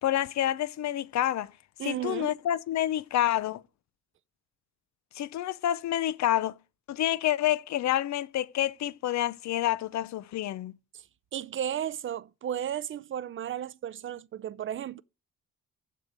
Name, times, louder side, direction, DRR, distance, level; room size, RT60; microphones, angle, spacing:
voice 1, 0.0-1.5 1.8-3.6 5.2-6.6 6.9-10.7, left 12 dB, 65° left, 0.7 m, -28 dB
voice 2, 1.8-2.3 11.3-15.0, right 10 dB, 40° right, 0.5 m, -34 dB
7.6 x 6.9 x 8.0 m
cardioid pair, 90°, 30 cm